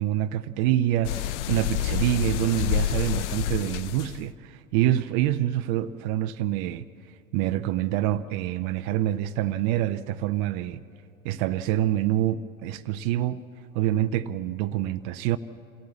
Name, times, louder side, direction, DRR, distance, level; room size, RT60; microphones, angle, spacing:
voice 1, 0.0-6.8 7.3-10.8 11.2-13.4 13.7-15.4, right 13 dB, 40° right, 0.7 m, -26 dB
sound 1, 1.0-4.2, left 11 dB, 55° left, 0.7 m, -28 dB
26.5 x 16.5 x 7.1 m
figure-of-eight pair, 85°, 42 cm